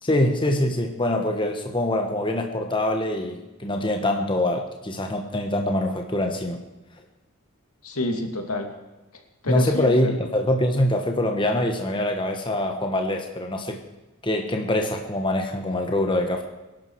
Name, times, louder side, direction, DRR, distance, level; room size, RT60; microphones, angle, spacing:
voice 1, 0.0-6.6 9.5-13.8 14.2-16.4, left 1 dB, 20° left, 4 dB, 1.3 m, -24 dB
voice 2, 7.8-8.7 9.1-10.2, left 2 dB, 80° left, 4 dB, 2.4 m, -29 dB
21.0 x 12.0 x 4.7 m, 1.1 s
head